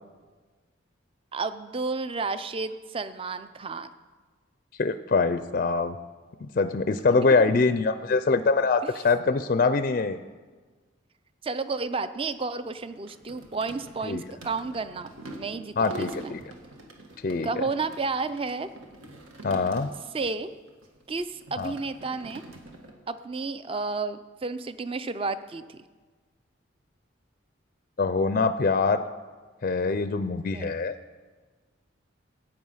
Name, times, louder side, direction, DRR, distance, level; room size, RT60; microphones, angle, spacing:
voice 1, 1.3-3.9 7.2-7.3 11.4-16.3 17.4-18.7 20.1-20.5 21.1-22.4 23.1-25.8 30.5-30.7, right 4 dB, 25° right, 12 dB, 0.4 m, -32 dB
voice 2, 4.8-6.0 6.4-10.2 14.0-14.2 15.8-16.4 17.2-17.5 19.4-19.9 21.6-21.7 28.0-29.0 29.6-30.9, left 4 dB, 45° left, 11 dB, 0.4 m, -24 dB
sound 1, 12.6-20.3 20.6-22.9, right 1 dB, 85° right, 1.6 m, -45 dB
14.0 x 8.9 x 5.5 m, 1.4 s
head